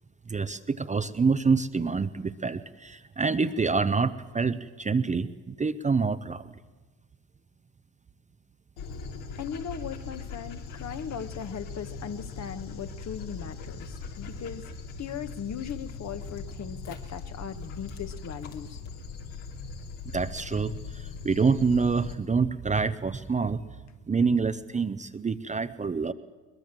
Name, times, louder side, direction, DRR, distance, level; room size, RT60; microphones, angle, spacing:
voice 1, 0.3-6.4 20.1-23.6 24.1-26.1, right 4 dB, 20° right, 10 dB, 0.8 m, -27 dB
Dog, 8.8-22.1, left 4 dB, 75° left, 3.1 m, -40 dB
voice 2, 9.4-14.7 15.0-18.8, left 7 dB, 40° left, 10 dB, 1.3 m, -38 dB
22.0 x 20.5 x 7.6 m, 1.3 s
supercardioid pair, 80°, 41 cm